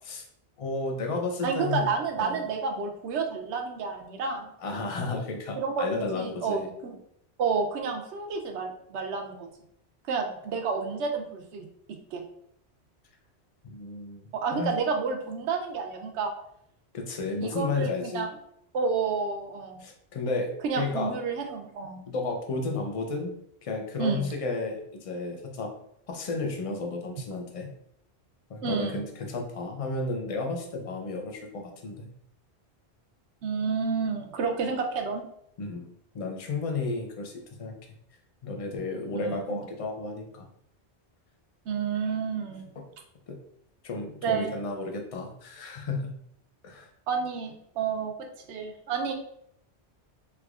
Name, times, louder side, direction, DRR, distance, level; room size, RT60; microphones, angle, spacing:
voice 1, 0.6-1.9 2.2-2.4 4.6-6.7 13.6-14.2 14.5-14.7 16.9-18.3 19.8-20.5 20.8-21.1 22.1-23.3 23.6-25.7 26.1-27.7 28.5-32.1 35.6-35.9 36.1-37.7 38.4-40.5 43.3-43.4 43.8-46.1 46.6-46.9, left 3 dB, 45° left, 2 dB, 0.5 m, -32 dB
voice 2, 1.4-4.5 5.6-6.9 7.4-9.5 10.1-11.7 12.1-12.2 14.3-16.3 17.4-18.3 18.7-19.8 20.6-22.0 24.0-24.3 28.6-29.0 33.4-35.2 39.1-39.6 41.7-42.7 44.2-44.5 47.1-48.1 48.5-49.1, right 5 dB, 85° right, 4 dB, 0.9 m, -30 dB
3.4 x 3.0 x 2.4 m, 0.72 s
omnidirectional pair, 1.1 m